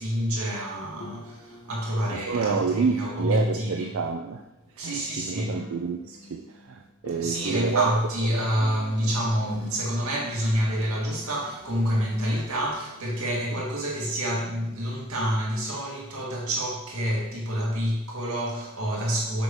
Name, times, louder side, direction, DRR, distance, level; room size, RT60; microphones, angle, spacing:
voice 1, 0.0-3.9 4.8-5.6 7.2-19.4, equal, 85° right, 1.8 m, -28 dB
sound 1, 1.0-11.2, left 1 dB, 80° left, 1.1 m, -48 dB
voice 2, 2.1-4.4 4.7-8.0 13.6-13.7, right 5 dB, 65° right, 0.4 m, -28 dB
sound 2, 7.8-13.1, equal, 10° right, 1.5 m, -51 dB
5.9 x 5.3 x 3.5 m
head